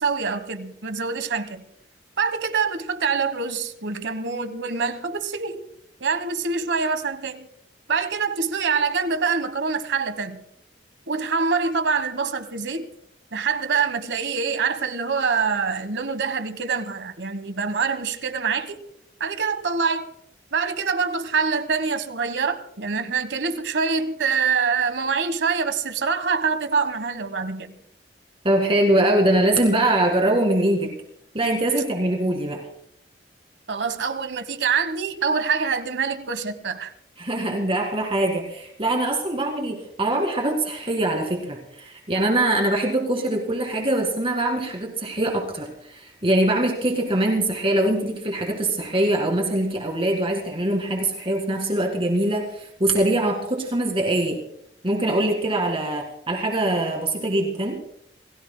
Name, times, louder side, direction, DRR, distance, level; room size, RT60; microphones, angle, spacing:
voice 1, 0.0-1.6 2.2-5.6 6.0-7.5 7.9-10.4 11.1-12.9 13.3-18.8 19.2-20.1 20.5-27.7 33.7-36.9, right 5 dB, 85° right, 1.3 m, -25 dB
voice 2, 28.4-30.9 31.3-32.6 37.2-54.4 54.8-57.8, right 1 dB, 30° right, 2.0 m, -23 dB
28.5 x 17.0 x 2.2 m
head